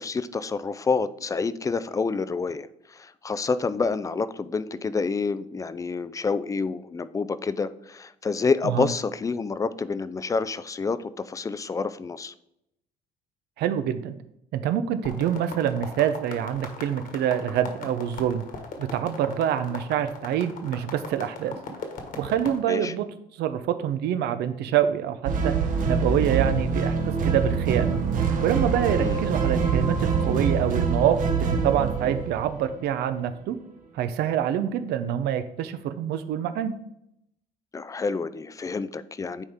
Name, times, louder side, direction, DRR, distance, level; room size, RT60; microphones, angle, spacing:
voice 1, 0.0-12.3 22.7-22.9 29.0-29.2 37.7-39.4, left 4 dB, 20° left, 14 dB, 0.4 m, -28 dB
voice 2, 13.6-14.1 14.5-18.5 18.8-21.6 22.2-23.1 23.4-25.5 25.9-28.0 28.4-33.6 33.9-36.7, right 9 dB, 75° right, 11 dB, 0.7 m, -26 dB
sound 1, 15.0-22.6, left 5 dB, 55° left, 1.5 m, -39 dB
sound 2, 25.2-32.6, right 5 dB, 50° right, 1.0 m, -25 dB
9.8 x 4.1 x 3.6 m, 0.79 s
cardioid pair, 110°, 17 cm